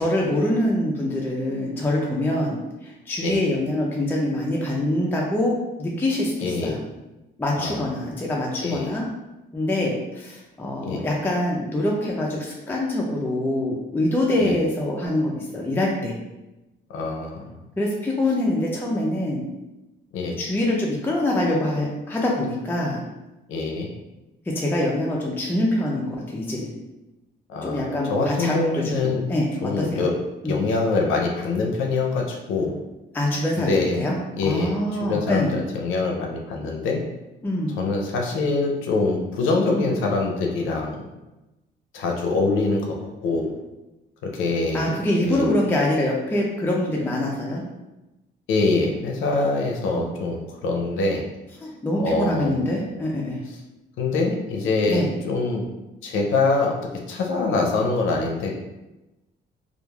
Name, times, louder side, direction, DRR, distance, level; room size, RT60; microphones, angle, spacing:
voice 1, 0.0-6.8 7.4-9.1 9.5-16.1 17.8-19.4 20.4-23.0 24.4-26.7 27.6-30.1 30.4-30.6 33.1-34.2 34.4-35.5 37.4-37.8 39.7-39.9 44.7-47.6 49.9-50.1 51.6-53.4 54.9-55.1, left 1 dB, 10° left, -2 dB, 0.4 m, -25 dB
voice 2, 6.4-6.8 7.6-7.8 8.6-8.9 10.8-11.0 14.4-14.5 16.9-17.6 20.1-20.4 23.5-23.9 27.5-29.2 29.6-30.1 30.5-32.8 33.6-34.0 34.4-34.8 35.1-37.0 37.8-41.0 41.9-43.5 44.2-44.9 45.3-45.6 48.5-51.2 52.0-52.6 54.0-55.6 56.0-58.6, left 3 dB, 85° left, 1 dB, 0.5 m, -24 dB
3.0 x 2.3 x 2.2 m, 1.0 s
cardioid pair, 90°, 20 cm